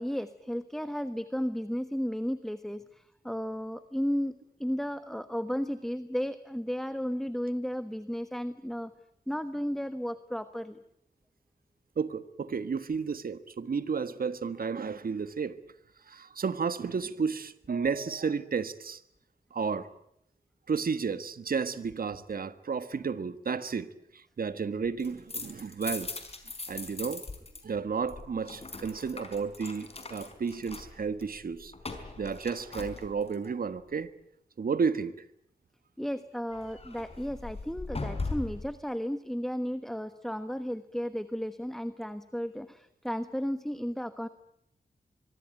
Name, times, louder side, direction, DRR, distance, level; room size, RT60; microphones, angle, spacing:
voice 1, 0.0-4.3 4.6-8.9 9.3-10.8 36.0-44.3, equal, ahead, 1.2 m, -34 dB
voice 2, 12.0-15.6 16.1-19.0 19.5-19.9 20.7-26.1 26.7-27.2 27.6-31.7 32.2-34.1 34.6-35.2, right 5 dB, 70° right, 1.6 m, -32 dB
sound 1, 24.8-27.6 27.9-33.5 36.5-38.7, left 3 dB, 40° left, 4.7 m, -40 dB
25.0 x 24.0 x 9.1 m
wide cardioid pair, 110°, 15 cm